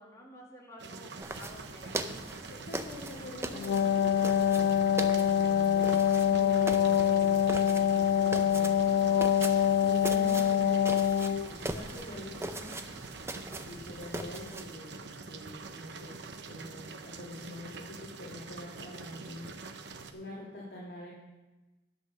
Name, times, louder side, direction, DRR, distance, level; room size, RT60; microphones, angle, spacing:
voice 1, 0.0-2.5 19.1-19.5, equal, 15° left, -2 dB, 2.2 m, -52 dB
sound 1, 0.8-20.1, right 4 dB, 60° right, 0.8 m, -45 dB
sound 2, 1.2-14.7, right 2 dB, 15° right, 0.5 m, -41 dB
voice 2, 2.6-5.9 6.2-9.1 9.8-11.1 11.4-13.0 13.6-19.5 20.0-21.1, left 1 dB, 55° left, -7 dB, 2.8 m, -45 dB
Wind instrument woodwind instrument, 3.5-11.5, left 9 dB, 80° left, 0.3 m, -25 dB
11.5 x 8.0 x 6.5 m, 1.1 s
head